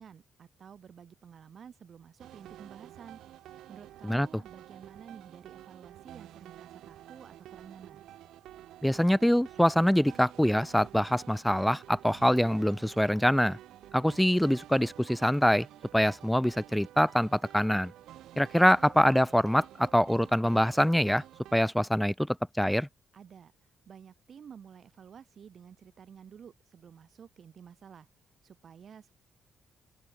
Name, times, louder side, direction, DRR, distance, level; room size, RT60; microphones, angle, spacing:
voice 1, 0.0-3.2 3.7-8.0 23.1-28.1 28.4-29.1, right 7 dB, 55° right, 5.5 m, -51 dB
sound 1, 2.2-21.7, right 13 dB, 85° right, 1.6 m, -50 dB
voice 2, 8.8-13.6 13.9-15.7 15.9-17.9 18.4-21.2 21.5-22.3 22.6-22.9, equal, 5° left, 0.5 m, -24 dB
cardioid pair, 85°, 0 cm